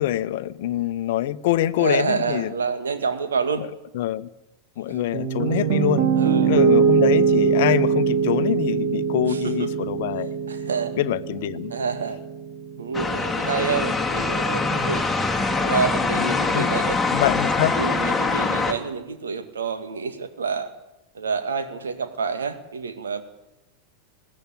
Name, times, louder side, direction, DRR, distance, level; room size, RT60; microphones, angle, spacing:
voice 1, 0.0-2.5 3.6-3.7 3.9-4.3 4.8-6.1 6.4-10.3 11.0-11.7 16.2-16.8 17.1-17.7, left 13 dB, 50° left, 0.9 m, -25 dB
voice 2, 1.8-3.7 4.9-5.1 6.1-6.5 9.2-9.7 10.5-11.0 11.7-12.2 12.8-15.1 15.6-17.2 17.8-20.7 21.1-23.2, right 5 dB, 70° right, 2.1 m, -28 dB
Piano, 5.1-13.2, right 6 dB, 45° right, 1.9 m, -22 dB
sound 1, 12.9-18.7, left 3 dB, 5° left, 2.2 m, -23 dB
21.0 x 15.5 x 9.1 m
figure-of-eight pair, 90°, 0 cm